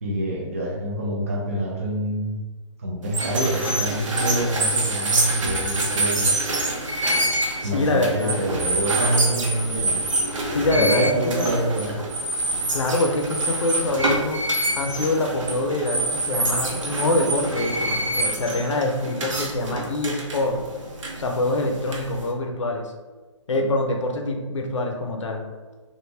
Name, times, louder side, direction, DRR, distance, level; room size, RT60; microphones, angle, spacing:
voice 1, 0.0-2.4 2.8-6.3 7.6-10.0 10.7-12.0, right 1 dB, 25° right, -4 dB, 0.4 m, -26 dB
sound 1, 3.0-22.3, right 2 dB, 75° right, 0.8 m, -26 dB
voice 2, 7.6-8.4 10.5-11.5 12.7-20.6 21.2-22.9 23.5-25.4, left 2 dB, 70° left, 2 dB, 0.6 m, -25 dB
3.3 x 2.6 x 2.7 m, 1.2 s
hypercardioid pair, 180°, 16 cm